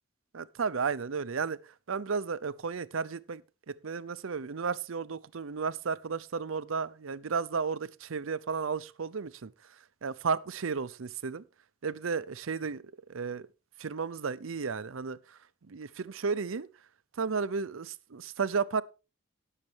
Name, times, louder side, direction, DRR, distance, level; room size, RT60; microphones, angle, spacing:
voice 1, 0.3-3.4 3.7-9.5 10.0-11.4 11.8-12.8 13.1-13.5 13.8-15.4 15.7-16.7 17.2-18.8, right 5 dB, 85° right, 0.6 m, -33 dB
17.5 x 6.6 x 3.4 m
head